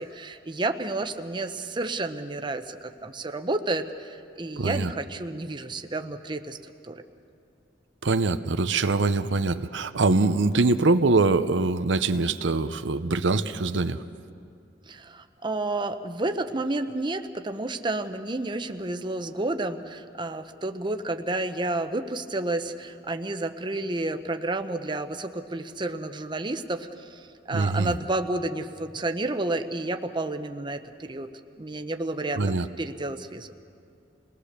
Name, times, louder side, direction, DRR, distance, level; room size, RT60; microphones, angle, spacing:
voice 1, 0.0-6.6 6.8-7.0 14.9-31.3 31.6-32.4 32.8-33.5, right 2 dB, 25° right, 7 dB, 0.8 m, -31 dB
voice 2, 4.6-4.9 8.0-14.0 27.5-27.9 32.4-32.7, right 3 dB, 90° right, 10 dB, 0.7 m, -23 dB
28.0 x 19.0 x 6.7 m, 2.4 s
head